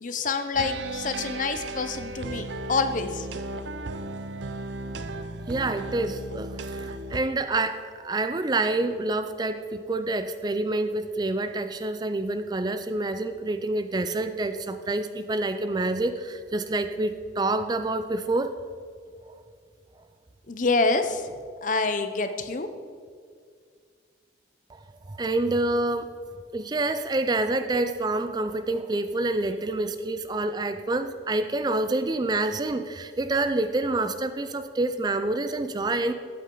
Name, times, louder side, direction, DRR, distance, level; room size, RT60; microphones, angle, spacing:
voice 1, 0.0-3.3 20.5-21.2 21.6-22.7, left 3 dB, 45° left, 9 dB, 0.7 m, -27 dB
rock music loop, 0.5-7.2, right 2 dB, 75° right, 0.6 m, -35 dB
voice 2, 5.5-18.6 24.7-24.8 25.1-26.1 26.5-36.1, right 2 dB, 20° right, 10 dB, 0.4 m, -27 dB
14.0 x 8.5 x 3.9 m, 2.1 s
head